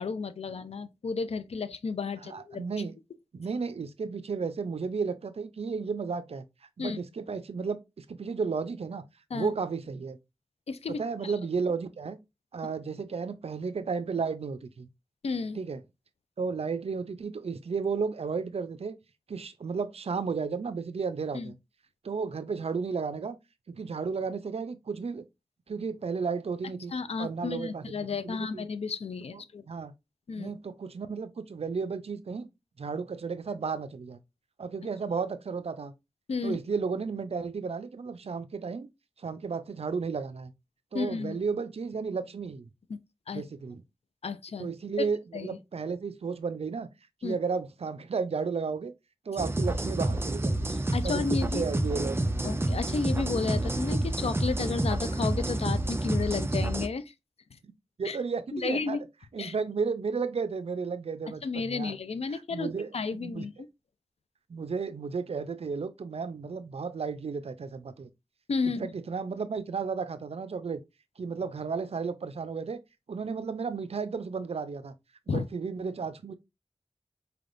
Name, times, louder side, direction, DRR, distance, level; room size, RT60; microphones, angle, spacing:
voice 1, 0.0-2.6 6.8-7.0 9.3-9.5 10.7-11.3 15.2-15.6 21.3-21.5 26.9-29.7 30.3-30.5 36.3-36.6 40.9-41.4 42.9-43.0 43.3-43.4 44.2-44.7 45.0-45.1 45.3-45.6 47.2-47.4 50.9-51.6 52.4-57.1 58.0-58.2 58.5-59.0 59.4-59.5 61.4-63.7 68.5-68.9 75.3-75.5, left 4 dB, 80° left, 0.5 m, -32 dB
voice 2, 2.2-3.0 3.3-6.4 6.8-9.0 9.3-10.2 11.0-12.2 12.5-14.9 15.6-15.8 16.4-19.0 19.3-21.6 22.0-23.4 23.7-25.2 25.7-26.9 27.2-28.7 29.7-29.9 30.4-32.5 32.8-34.2 34.6-35.9 36.4-38.9 39.2-40.5 40.9-42.7 43.3-43.8 44.6-46.9 47.2-48.9 49.3-50.7 51.0-52.5 58.0-59.0 59.3-62.0 62.3-63.5 64.5-68.1 68.6-70.8 71.2-72.8 73.1-74.9 75.3-76.3, right 5 dB, 75° right, 0.5 m, -33 dB
sound 1, 49.4-56.9, right 1 dB, 25° right, 0.5 m, -29 dB
4.6 x 3.4 x 2.5 m
wide cardioid pair, 50°, 10 cm